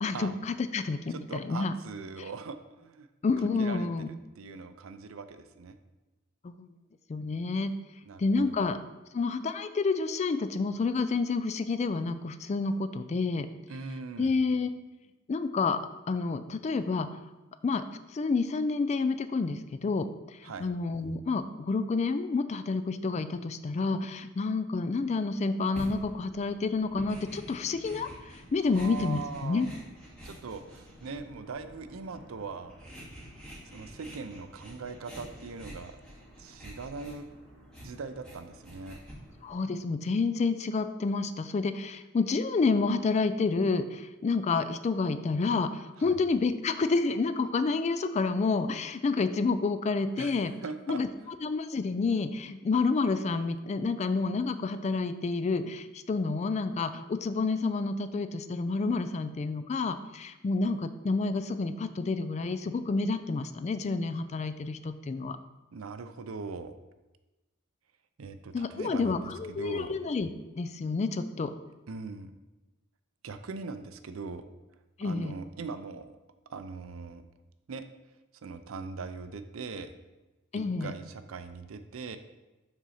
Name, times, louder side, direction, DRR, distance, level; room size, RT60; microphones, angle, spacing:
voice 1, 0.0-1.7 3.2-4.1 6.4-6.7 7.1-7.7 8.2-8.8 9.1-13.5 14.2-14.7 15.3-15.8 16.1-17.1 17.6-17.8 18.1-29.7 39.4-50.5 50.9-51.1 51.4-65.4 68.5-70.3 70.6-71.5 75.0-75.3 80.5-80.9, left 4 dB, 35° left, 11 dB, 0.3 m, -29 dB
voice 2, 1.1-3.1 3.6-5.8 8.1-8.7 13.7-14.4 20.4-20.7 28.6-29.7 30.2-32.7 33.7-35.9 36.4-37.3 37.8-39.0 46.0-46.2 50.2-50.4 50.6-51.0 65.7-66.8 68.2-69.9 71.9-72.3 73.2-74.4 75.0-76.1 76.5-77.2 77.7-77.9 78.4-79.9 80.5-82.2, right 4 dB, 75° right, 10 dB, 0.5 m, -41 dB
sound 1, 25.7-39.5, equal, ahead, 2.4 m, -48 dB
6.0 x 4.0 x 5.6 m, 1.1 s
head